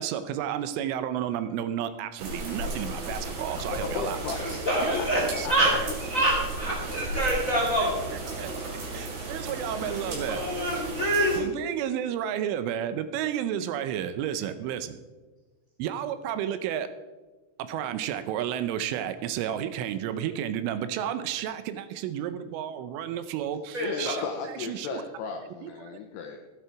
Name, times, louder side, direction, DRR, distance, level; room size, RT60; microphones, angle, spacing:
voice 1, 0.0-4.2 4.8-5.9 7.8-8.5 8.9-10.4 11.4-15.0 15.8-16.9 17.6-25.0 25.6-26.0, right 10 dB, 80° right, 11 dB, 3.1 m, -32 dB
sound 1, 2.2-11.4, right 2 dB, 55° right, 4.3 m, -35 dB
voice 2, 3.7-5.5 6.1-6.2 8.3-8.7 23.8-26.4, left 5 dB, 85° left, 3 dB, 2.4 m, -35 dB
voice 3, 4.3-5.7 6.1-8.0 9.7-11.5 23.7-24.2, right 1 dB, 35° left, -4 dB, 1.4 m, -27 dB
14.5 x 9.7 x 4.6 m, 1.2 s
omnidirectional pair, 5.8 m